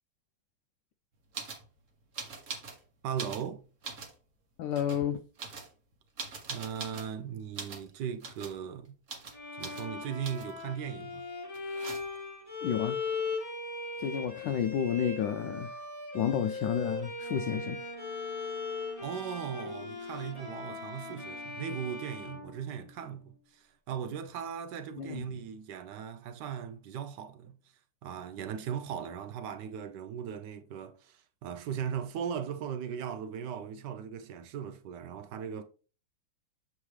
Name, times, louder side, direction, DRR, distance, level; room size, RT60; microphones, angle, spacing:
sound 1, 1.3-1.6 2.1-2.8 3.1-4.2 4.7-5.0 5.4-7.1 7.5-7.9 8.2-8.6 9.1-9.4 9.6-9.9 10.2-10.6 11.5-12.3 14.1-14.2 14.4-15.0, right 4 dB, 45° right, 1.2 m, -42 dB
voice 1, 3.0-3.6 6.5-9.0 9.6-11.3 19.0-27.6 28.0-35.6, right 8 dB, 75° right, 1.0 m, -38 dB
voice 2, 4.6-5.2 12.6-13.0 14.0-15.8 16.1-17.8 25.0-25.2, left 9 dB, 75° left, 1.1 m, -31 dB
Bowed string instrument, 9.3-23.2, left 3 dB, 20° left, 1.2 m, -39 dB
Wind instrument woodwind instrument, 17.2-21.6, right 2 dB, ahead, 1.1 m, -51 dB
7.2 x 4.8 x 3.2 m
omnidirectional pair, 2.3 m